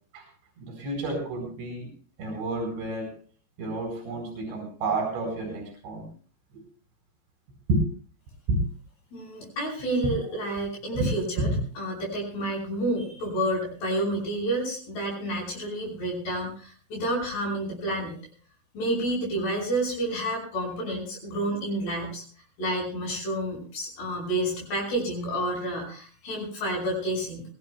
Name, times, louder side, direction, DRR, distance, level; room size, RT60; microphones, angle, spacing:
voice 1, 0.6-1.9 2.2-3.1 3.6-6.1 6.5-6.6 7.7-7.8 8.5-8.6 11.0-11.6, right 2 dB, 80° right, 3 dB, 6.6 m, -29 dB
voice 2, 9.1-18.2 18.7-22.2 22.6-27.4, right 1 dB, 65° left, -3 dB, 7.2 m, -29 dB
23.5 x 18.0 x 2.2 m, 0.43 s
omnidirectional pair, 5.1 m